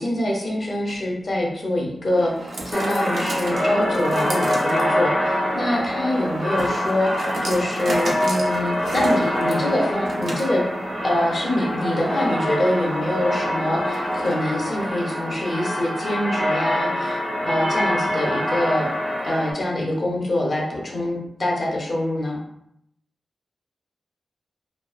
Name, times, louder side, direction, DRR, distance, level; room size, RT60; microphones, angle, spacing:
voice 1, 0.0-10.6 11.0-18.9 19.2-22.4, left 1 dB, 40° left, -2 dB, 0.6 m, -25 dB
sound 1, 0.7-14.7, right 1 dB, 65° right, 0.4 m, -34 dB
sound 2, 2.7-19.5, equal, 5° right, 0.5 m, -25 dB
2.4 x 2.3 x 2.3 m, 0.74 s
wide cardioid pair, 140°, 0 cm